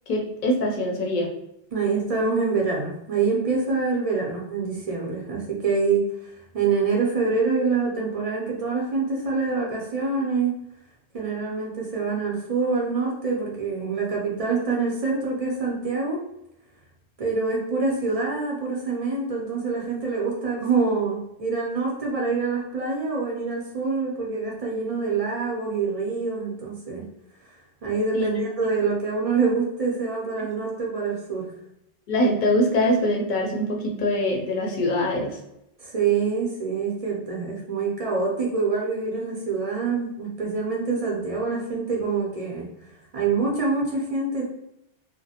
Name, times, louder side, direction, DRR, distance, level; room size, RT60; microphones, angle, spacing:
voice 1, 0.1-1.3 28.1-28.3 32.1-35.3, left 1 dB, 50° left, 0 dB, 0.7 m, -23 dB
voice 2, 1.7-10.6 11.1-16.2 17.2-27.1 27.5-31.5 35.8-42.7 43.1-44.4, right 4 dB, 50° right, -3 dB, 0.4 m, -26 dB
2.4 x 2.1 x 2.7 m, 0.82 s
omnidirectional pair, 1.1 m